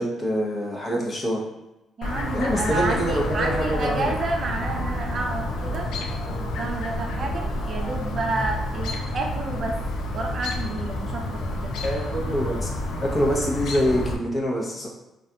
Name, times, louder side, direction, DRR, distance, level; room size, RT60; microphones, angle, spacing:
voice 1, 0.0-1.4 2.3-4.1 11.8-12.7 13.0-14.9, equal, 35° left, -2 dB, 0.7 m, -25 dB
Chirp tweet, 2.0-14.2, left 1 dB, 80° left, 0.3 m, -29 dB
voice 2, 2.0-5.9 6.4-9.8 10.1-11.7, right 3 dB, 50° right, 2 dB, 0.4 m, -30 dB
sound 1, 4.2-10.2, right 1 dB, 20° right, 0.9 m, -38 dB
2.7 x 2.3 x 2.2 m, 0.97 s
cardioid pair, 90°, 0 cm